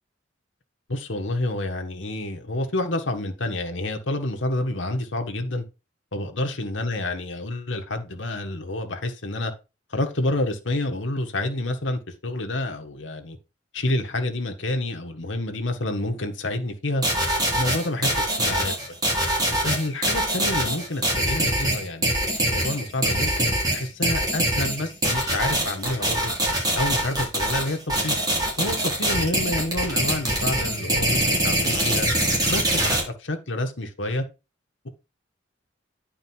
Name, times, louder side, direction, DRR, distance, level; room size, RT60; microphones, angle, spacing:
voice 1, 0.9-5.6 6.1-9.5 9.9-13.4 13.7-17.0 17.5-18.1 18.4-19.0 19.5-22.1 22.5-26.3 26.7-28.2 28.6-32.1 32.5-34.2, left 1 dB, 80° left, 1.5 m, -28 dB
sound 1, 17.0-33.0, right 1 dB, 20° right, 3.8 m, -23 dB
9.6 x 4.7 x 4.5 m
head